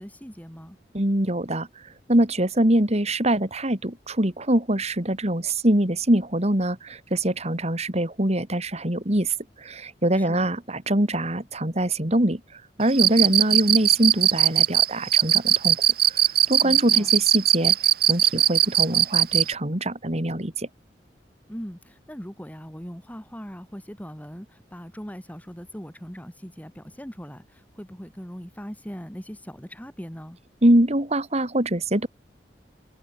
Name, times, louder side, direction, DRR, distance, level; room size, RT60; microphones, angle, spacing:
voice 1, 0.0-0.8 10.1-10.5 16.6-17.1 21.5-30.4, equal, 10° left, 5.9 m, -40 dB
voice 2, 0.9-1.7 2.1-9.3 9.6-12.4 12.8-15.8 16.5-17.7 18.1-20.7 30.6-32.1, right 1 dB, 40° right, 3.4 m, -23 dB
Cricket, 12.9-19.5, right 11 dB, 60° right, 1.3 m, -19 dB
head